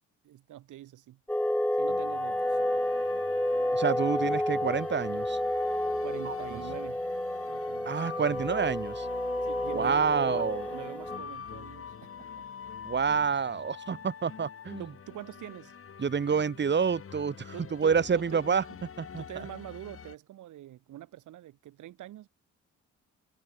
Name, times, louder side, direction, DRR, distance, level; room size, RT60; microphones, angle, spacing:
voice 1, 0.2-1.2 1.8-2.9 6.0-7.0 7.5-8.1 9.4-12.4 14.8-15.7 17.5-18.4 19.2-22.3, right 13 dB, 80° right, 5.1 m, -45 dB
sound 1, 1.3-11.2, left 1 dB, 5° left, 2.2 m, -30 dB
sound 2, 1.9-20.2, left 7 dB, 45° left, 4.5 m, -45 dB
voice 2, 3.7-5.4 6.2-6.6 7.8-9.1 9.7-10.7 12.8-14.9 16.0-19.2, right 6 dB, 35° right, 2.1 m, -28 dB
cardioid pair, 90°, 30 cm